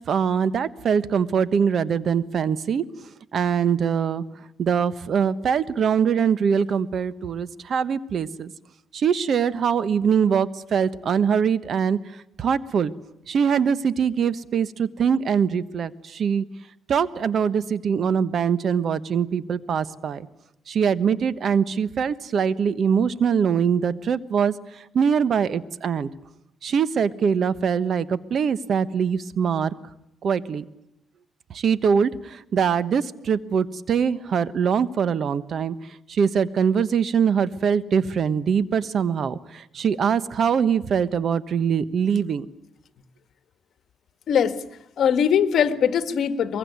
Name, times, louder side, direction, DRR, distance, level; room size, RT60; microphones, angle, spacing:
voice 1, 0.1-2.8 3.3-4.2 4.6-8.5 8.9-12.9 13.3-16.4 16.9-20.3 20.7-26.1 26.6-29.7 30.2-30.7 31.5-35.7 36.1-42.5, right 7 dB, 60° right, 15 dB, 1.2 m, -23 dB
voice 2, 44.3-44.6 45.0-46.6, left 8 dB, 70° left, 11 dB, 1.6 m, -21 dB
23.5 x 22.5 x 9.6 m, 0.81 s
cardioid pair, 95°, 0 cm